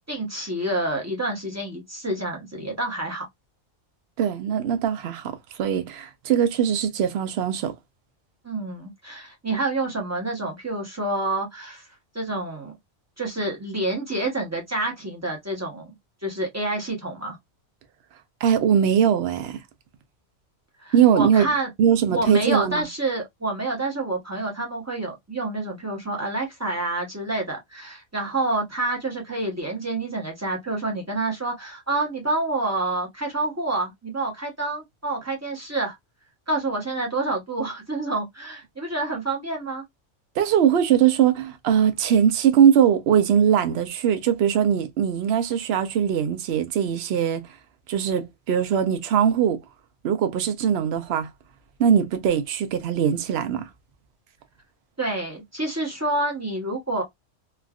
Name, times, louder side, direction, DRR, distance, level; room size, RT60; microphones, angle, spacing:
voice 1, 0.1-3.2 8.4-11.8 12.1-12.7 13.2-15.9 16.2-17.4 20.8-21.7 22.1-36.0 36.5-39.8 55.0-57.0, right 2 dB, 15° right, 0.8 m, -28 dB
voice 2, 4.2-7.7 18.4-19.6 20.9-21.5 21.8-22.9 40.4-47.4 47.9-49.6 50.0-51.3 51.8-53.6, right 8 dB, 65° right, 0.8 m, -21 dB
3.4 x 2.3 x 2.3 m
omnidirectional pair, 1.2 m